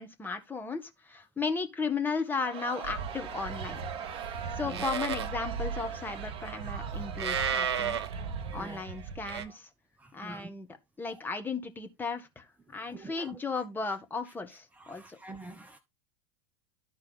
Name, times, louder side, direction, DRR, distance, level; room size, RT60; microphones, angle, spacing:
voice 1, 0.0-3.8 4.5-8.0 8.5-9.7 10.1-10.7 11.0-15.2, left 4 dB, 15° left, 1.4 m, -35 dB
Crowd, 2.3-9.5, right 8 dB, 40° right, 1.2 m, -42 dB
Livestock farm animals working animals, 2.8-9.4, right 6 dB, 65° right, 1.0 m, -35 dB
voice 2, 10.0-10.5 11.1-11.2 12.9-13.3 14.8-15.8, right 2 dB, 10° right, 0.8 m, -46 dB
12.5 x 4.4 x 3.6 m
figure-of-eight pair, 85°, 14 cm